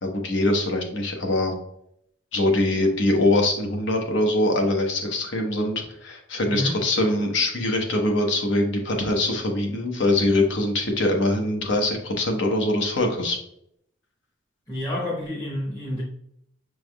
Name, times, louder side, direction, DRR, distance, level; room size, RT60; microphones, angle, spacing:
voice 1, 0.0-1.5 2.3-13.4, left 1 dB, 65° left, 0.9 m, -23 dB
voice 2, 14.7-16.0, left 1 dB, 15° left, 0.8 m, -29 dB
6.2 x 3.4 x 2.2 m
head